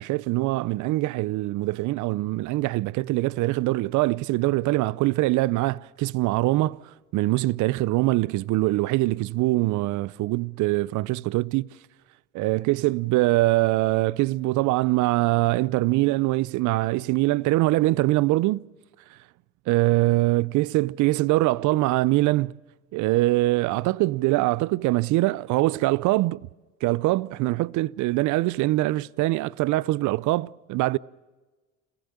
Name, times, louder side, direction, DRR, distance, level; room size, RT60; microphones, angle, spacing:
voice 1, 0.0-6.8 7.1-11.7 12.3-18.6 19.7-22.5 22.9-26.4 26.8-31.0, right 19 dB, 60° right, 0.6 m, -23 dB
29.0 x 16.0 x 7.1 m
supercardioid pair, 75°, 33 cm